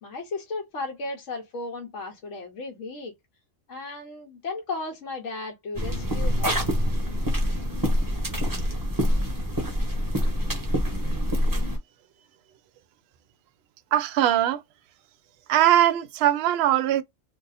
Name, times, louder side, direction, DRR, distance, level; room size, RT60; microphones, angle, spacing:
voice 1, 0.0-3.1 3.7-6.7, left 3 dB, 75° left, 1.1 m, -35 dB
sound 1, 5.7-11.8, equal, 20° right, 0.9 m, -25 dB
voice 2, 13.9-14.6 15.5-17.0, right 12 dB, 65° right, 0.7 m, -21 dB
2.6 x 2.5 x 4.0 m
omnidirectional pair, 1.3 m